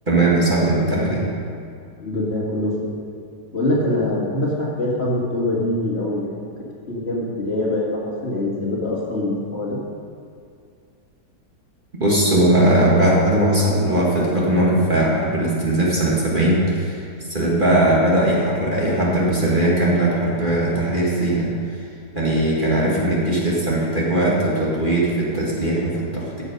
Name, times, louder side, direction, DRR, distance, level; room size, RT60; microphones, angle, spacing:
voice 1, 0.1-1.2 12.0-17.0 17.3-21.5 22.1-26.4, right 1 dB, 30° right, -5 dB, 2.2 m, -19 dB
voice 2, 2.0-3.0 3.5-6.5 6.9-9.8, left 1 dB, 40° left, -5 dB, 2.2 m, -24 dB
13.5 x 8.0 x 5.3 m, 2.4 s
omnidirectional pair, 1.8 m